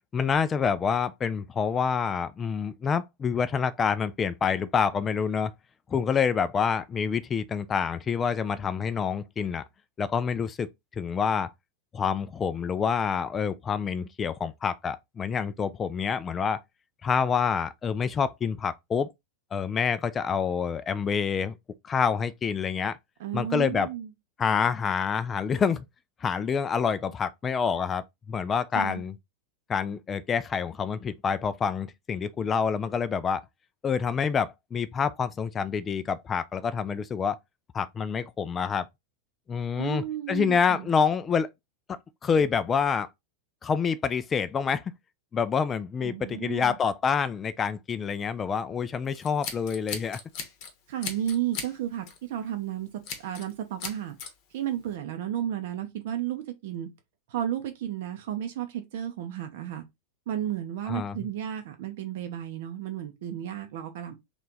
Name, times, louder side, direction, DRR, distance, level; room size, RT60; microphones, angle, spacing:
voice 1, 0.1-5.5 5.9-9.6 10.0-10.7 11.0-11.5 11.9-16.6 17.0-19.1 19.5-21.6 21.8-23.0 23.3-23.9 24.4-25.8 26.2-29.1 29.7-33.4 33.8-37.4 37.7-38.9 39.5-41.5 42.2-43.1 43.6-44.8 45.3-50.2 60.9-61.2, left 6 dB, 20° left, 0.3 m, -27 dB
voice 2, 23.2-24.1 28.7-29.0 39.8-40.9 46.0-46.8 50.9-52.9 53.2-54.2 54.5-56.9 57.3-59.8 60.3-64.1, right 11 dB, 55° right, 0.7 m, -33 dB
Scissors, 49.1-50.7 51.0-51.7 52.1-52.3 53.0-53.5 53.8-54.3, left 6 dB, 45° left, 0.9 m, -37 dB
3.3 x 3.0 x 3.9 m
figure-of-eight pair, 90°, 0 cm